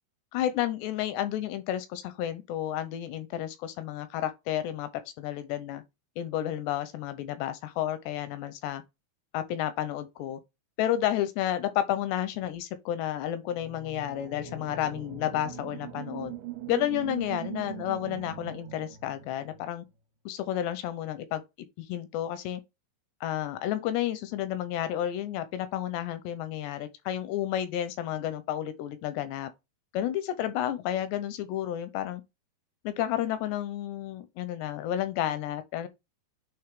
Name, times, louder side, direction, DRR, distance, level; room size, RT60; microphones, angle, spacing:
voice 1, 0.3-4.9 5.2-5.8 6.2-8.8 9.3-10.4 10.8-16.3 16.7-19.9 20.3-21.4 21.8-22.6 23.2-29.5 29.9-32.2 32.8-35.9, left 12 dB, 85° left, 2.6 m, -31 dB
sound 1, 13.5-19.7, right 9 dB, 80° right, 2.9 m, -41 dB
8.9 x 3.4 x 3.5 m
omnidirectional pair, 5.3 m